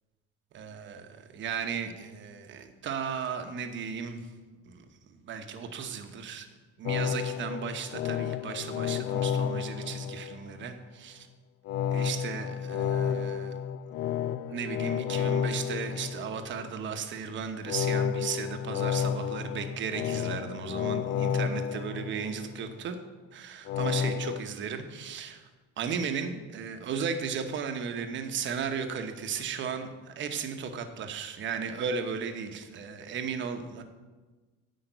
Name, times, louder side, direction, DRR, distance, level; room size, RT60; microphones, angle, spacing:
voice 1, 0.5-4.3 4.7-6.5 6.8-11.3 11.9-13.5 14.5-23.0 23.3-25.4 25.8-33.8, right 6 dB, 40° right, 7 dB, 1.0 m, -35 dB
sound 1, 6.8-10.7 11.6-16.7 17.6-22.7 23.7-24.4, left 8 dB, 60° left, 0.5 m, -31 dB
10.5 x 5.1 x 8.0 m, 1.3 s
cardioid pair, 150°, 29 cm